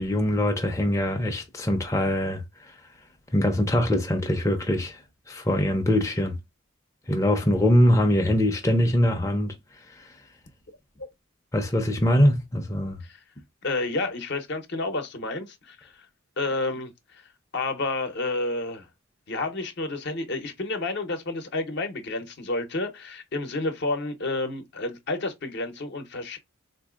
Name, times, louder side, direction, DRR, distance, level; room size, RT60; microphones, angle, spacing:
voice 1, 0.0-2.7 3.3-5.0 5.3-6.3 7.1-9.5 11.5-13.0, left 1 dB, 15° left, 0.5 m, -23 dB
voice 2, 13.6-16.1 16.4-17.3 17.5-18.9 19.3-26.4, left 2 dB, 55° left, 0.7 m, -30 dB
3.7 x 2.6 x 2.3 m
head